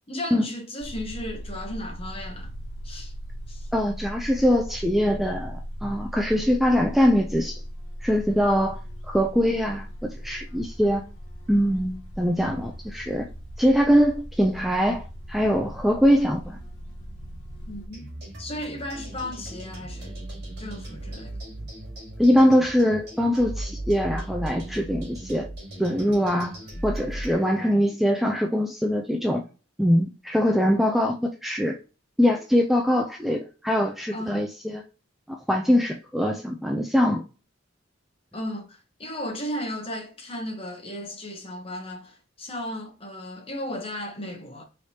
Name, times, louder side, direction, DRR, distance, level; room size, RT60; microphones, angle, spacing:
voice 1, 0.1-2.5 2.8-3.1 3.5-3.7 17.7-18.1 18.4-20.2 20.6-21.3 34.1-34.5 38.3-44.6, left 1 dB, 30° left, 0.9 m, -35 dB
sound 1, 0.8-17.9, equal, 85° left, 0.9 m, -38 dB
voice 2, 3.7-7.6 8.0-8.8 9.1-9.9 10.2-11.0 11.5-13.3 13.6-16.6 22.2-25.5 25.8-26.6 26.8-29.4 29.8-31.8 32.2-34.5 34.7-34.8 35.3-37.2, equal, ahead, 0.3 m, -22 dB
sound 2, 17.9-27.3, right 1 dB, 55° right, 1.8 m, -37 dB
4.5 x 3.3 x 2.8 m
head